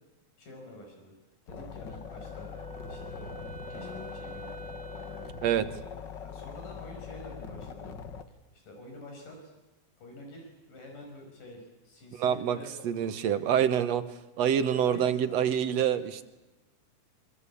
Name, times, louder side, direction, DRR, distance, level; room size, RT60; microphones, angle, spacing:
voice 1, 0.4-1.1 1.5-2.6 2.9-3.3 3.7-4.8 5.2-5.4 6.1-8.0 8.5-9.5 10.0-13.6 14.6-15.6 15.8-16.0, left 1 dB, 90° left, 2 dB, 7.3 m, -48 dB
Arctic Noise Alarm, 1.5-8.2, left 7 dB, 50° left, 1.5 m, -42 dB
Wind instrument woodwind instrument, 1.9-5.9, right 4 dB, 35° right, 2.9 m, -47 dB
voice 2, 5.4-5.7 12.2-12.6 12.8-14.0 14.4-16.2, right 9 dB, 65° right, 11 dB, 2.1 m, -26 dB
26.0 x 23.5 x 8.4 m, 1.1 s
omnidirectional pair, 3.7 m